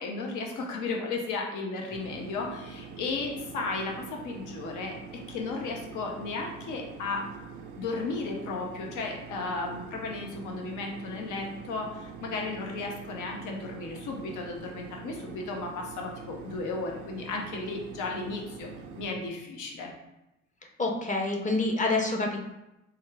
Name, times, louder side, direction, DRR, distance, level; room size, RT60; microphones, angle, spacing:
voice 1, 0.0-7.3 7.8-18.7 19.0-19.9, left 3 dB, 80° left, 1 dB, 0.7 m, -34 dB
sound 1, 1.9-19.2, right 6 dB, 90° right, 0.5 m, -45 dB
voice 2, 20.8-22.4, left 2 dB, 25° left, 2 dB, 0.6 m, -27 dB
3.4 x 2.3 x 3.3 m, 0.93 s
cardioid pair, 90°, 30 cm